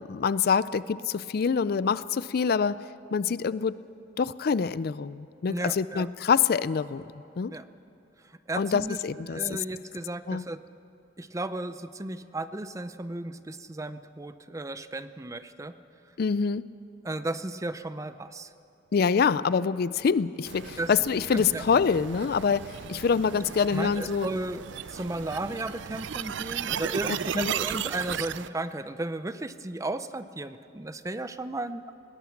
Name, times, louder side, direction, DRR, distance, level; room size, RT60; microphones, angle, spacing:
voice 1, 0.0-2.8 3.1-3.7 4.2-7.0 7.4-7.5 8.6-9.6 10.3-10.5 16.2-16.6 18.9-24.3 27.3-27.5, left 6 dB, 55° left, 17 dB, 0.4 m, -26 dB
voice 2, 5.5-6.1 7.5-7.7 8.2-9.0 9.3-10.6 11.2-15.8 17.0-18.5 20.8-20.9 21.3-21.6 23.7-31.9, right 2 dB, 15° right, 12 dB, 0.6 m, -34 dB
sound 1, 20.5-28.5, right 8 dB, 75° right, 0.5 m, -35 dB
20.5 x 18.0 x 7.2 m, 2.9 s
head